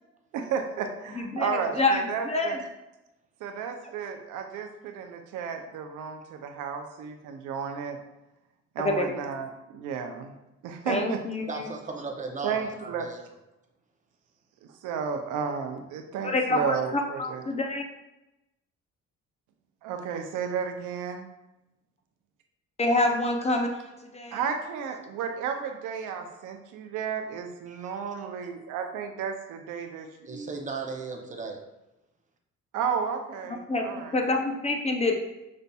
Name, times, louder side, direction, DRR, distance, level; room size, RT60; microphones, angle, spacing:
voice 1, 0.3-2.6 3.4-8.0 8.7-10.3 10.6-11.2 12.4-13.1 14.6-17.4 19.8-21.3 24.3-30.5 32.7-34.2, right 6 dB, 90° right, 5 dB, 0.5 m, -33 dB
voice 2, 1.1-2.6 8.8-9.2 10.9-11.7 16.2-17.8 22.8-24.4 33.7-33.8 34.1-35.1, left 2 dB, 20° left, 3 dB, 0.4 m, -27 dB
voice 3, 11.5-13.2 27.7-28.1 30.3-31.6, right 4 dB, 25° right, 2 dB, 0.6 m, -37 dB
5.2 x 2.6 x 2.2 m, 0.95 s
cardioid pair, 90°, 30 cm